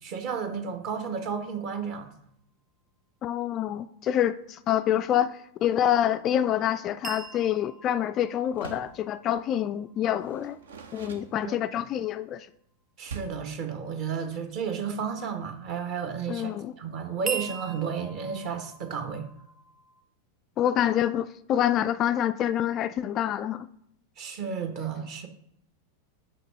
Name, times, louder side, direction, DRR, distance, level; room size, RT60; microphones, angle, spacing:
voice 1, 0.0-2.1 11.4-11.5 13.0-19.3 24.2-25.3, right 6 dB, 40° right, 1.2 m, -32 dB
voice 2, 3.2-10.6 10.9-12.5 16.3-16.7 20.6-23.7, left 10 dB, 30° left, 0.3 m, -26 dB
sound 1, 7.0-11.0 17.3-20.0, right 5 dB, 25° right, 0.9 m, -41 dB
Door, 8.5-9.0 10.2-11.9 13.0-13.5, right 5 dB, 65° right, 0.7 m, -43 dB
6.5 x 5.2 x 5.1 m
figure-of-eight pair, 90°, 0 cm